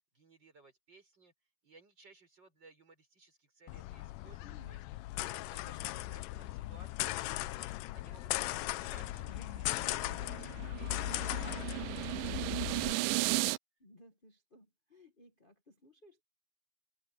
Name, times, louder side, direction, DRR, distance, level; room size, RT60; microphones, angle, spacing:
voice 1, 0.1-1.3 1.6-4.8 5.2-13.4, right 3 dB, 30° right, 6.5 m, -60 dB
sound 1, 3.7-12.9, left 17 dB, 90° left, 2.2 m, -38 dB
voice 2, 4.4-4.8 11.0-11.4 13.8-16.2, left 1 dB, 50° left, 0.6 m, -60 dB
sound 2, 9.3-13.6, right 21 dB, 90° right, 2.2 m, -35 dB
omnidirectional pair, 3.8 m